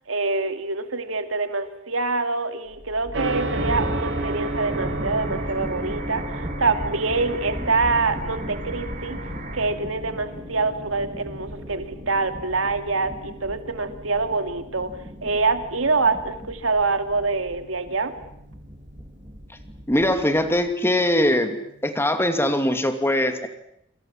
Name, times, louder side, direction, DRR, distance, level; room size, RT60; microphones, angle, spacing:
voice 1, 0.1-9.2 9.5-14.9 15.2-18.1, right 3 dB, 85° right, 8 dB, 2.5 m, -25 dB
sound 1, 2.7-20.7, equal, 15° right, 2.5 m, -37 dB
Gong, 3.1-22.1, right 1 dB, 60° right, 3.0 m, -36 dB
sound 2, 3.5-9.7, right 2 dB, 40° right, 7.0 m, -38 dB
voice 2, 19.9-21.6 21.8-23.5, left 1 dB, 10° left, 8 dB, 2.7 m, -21 dB
27.5 x 27.0 x 7.5 m, 0.74 s
head